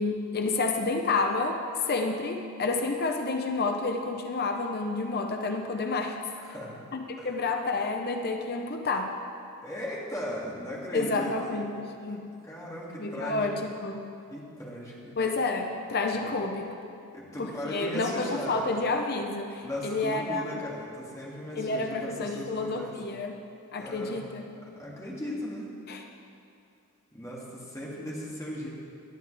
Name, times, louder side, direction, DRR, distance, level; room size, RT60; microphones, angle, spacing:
voice 1, 0.0-6.2 6.9-9.1 10.9-12.3 13.0-14.1 15.2-16.9 17.4-20.4 21.6-23.3 23.7-24.5 25.9-26.0, left 3 dB, 45° left, 4 dB, 0.7 m, -30 dB
voice 2, 6.4-6.8 7.2-7.3 9.6-11.6 12.1-13.7 14.3-15.2 16.2-16.3 17.1-18.8 19.6-22.9 23.8-24.2 24.8-25.7 27.1-28.7, left 1 dB, 15° left, -5 dB, 2.4 m, -37 dB
18.0 x 11.5 x 3.4 m, 2.6 s
head